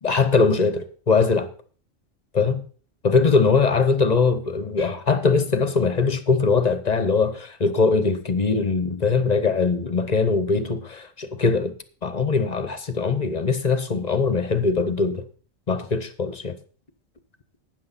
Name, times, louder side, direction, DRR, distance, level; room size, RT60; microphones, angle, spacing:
voice 1, 0.0-1.5 2.3-2.6 3.0-11.7 12.0-15.2 15.7-16.6, left 4 dB, 35° left, 0.8 m, -21 dB
13.0 x 9.2 x 4.1 m
omnidirectional pair, 1.4 m